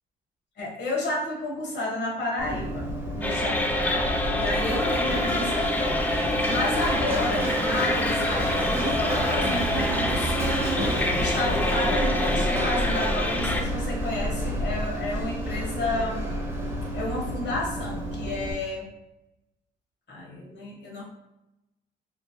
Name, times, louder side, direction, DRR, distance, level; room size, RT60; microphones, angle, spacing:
voice 1, 0.6-16.2 16.9-18.9 20.1-21.0, left 1 dB, 60° left, -2 dB, 1.1 m, -31 dB
Run, 2.4-18.5, equal, 10° right, 0.7 m, -30 dB
sound 1, 3.2-13.6, left 1 dB, 10° left, 0.3 m, -27 dB
3.0 x 2.6 x 2.2 m, 0.95 s
cardioid pair, 90°, 20 cm